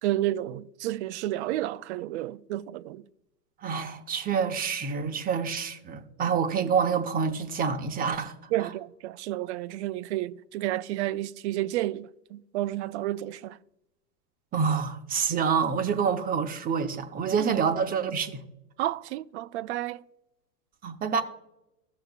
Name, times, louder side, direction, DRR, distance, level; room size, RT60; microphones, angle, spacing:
voice 1, 0.0-3.0 8.5-13.6 17.4-17.5 18.8-20.0, right 14 dB, 50° right, 0.5 m, -31 dB
voice 2, 3.6-8.3 8.6-8.7 14.5-18.4 20.8-21.2, right 6 dB, 20° right, 0.8 m, -27 dB
16.5 x 6.5 x 2.4 m
hypercardioid pair, 115°, 47 cm